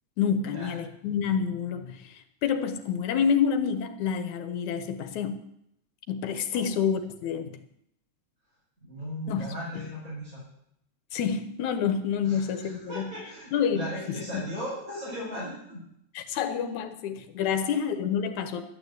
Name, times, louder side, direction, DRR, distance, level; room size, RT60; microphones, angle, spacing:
voice 1, 0.2-5.4 6.1-7.6 9.3-9.4 9.7-9.8 11.1-13.1 13.5-14.4 16.1-18.6, left 7 dB, 80° left, 8 dB, 2.6 m, -28 dB
voice 2, 8.8-10.4 12.2-15.8 17.5-17.7, equal, 25° right, -10 dB, 6.7 m, -37 dB
12.5 x 9.0 x 8.2 m, 0.75 s
omnidirectional pair, 3.3 m